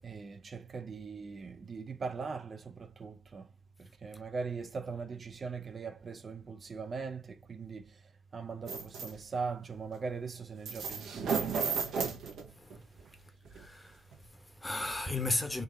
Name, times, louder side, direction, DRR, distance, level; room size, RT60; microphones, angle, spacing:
voice 1, 0.0-3.5 3.8-8.0 8.3-11.6, right 5 dB, 40° right, 0.7 m, -40 dB
sound 1, 8.7-9.1 10.7-12.8 13.5-13.6 14.1-14.2, right 5 dB, 75° right, 1.3 m, -33 dB
voice 2, 12.6-12.9 13.5-15.6, left 2 dB, 15° left, 1.1 m, -36 dB
3.9 x 2.8 x 3.9 m
cardioid pair, 90°, 0 cm